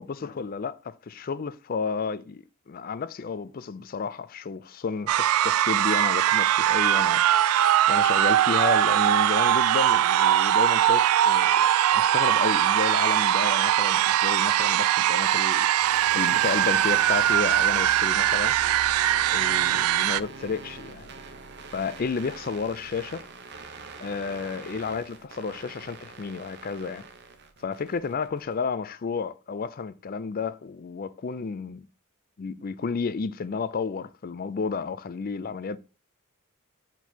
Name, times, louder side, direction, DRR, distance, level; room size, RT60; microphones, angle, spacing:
voice 1, 0.0-7.2 7.9-11.6 11.9-15.7 16.1-18.6 19.3-21.1 21.7-23.3 24.0-27.1 27.6-31.9 32.4-35.8, left 5 dB, 40° left, 0.4 m, -32 dB
sound 1, 5.1-20.2, right 11 dB, 85° right, 0.3 m, -21 dB
sound 2, 15.7-28.5, right 4 dB, 50° right, 0.9 m, -43 dB
8.0 x 4.5 x 2.9 m
head